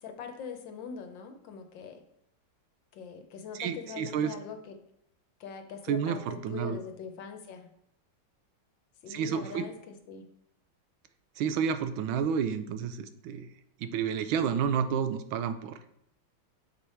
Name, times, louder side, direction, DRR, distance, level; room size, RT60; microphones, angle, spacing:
voice 1, 0.0-2.0 2.9-4.7 5.4-7.7 9.0-10.2, left 6 dB, 70° left, 6 dB, 1.4 m, -42 dB
voice 2, 3.6-4.3 5.9-6.8 9.1-9.7 11.4-13.5 13.8-15.8, right 7 dB, 80° right, 10 dB, 1.4 m, -30 dB
6.9 x 4.8 x 4.3 m, 0.75 s
omnidirectional pair, 2.2 m